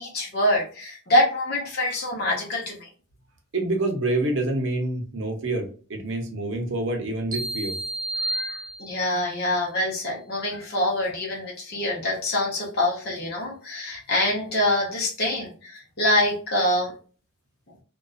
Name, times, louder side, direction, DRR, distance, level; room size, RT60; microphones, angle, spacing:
voice 1, 0.0-2.9 8.2-16.9, left 1 dB, 45° left, -3 dB, 0.8 m, -25 dB
voice 2, 3.5-7.8, right 2 dB, 55° right, 2 dB, 0.7 m, -27 dB
sound 1, 7.3-9.3, right 1 dB, 15° right, 0.3 m, -31 dB
2.5 x 2.3 x 2.3 m, 0.39 s
head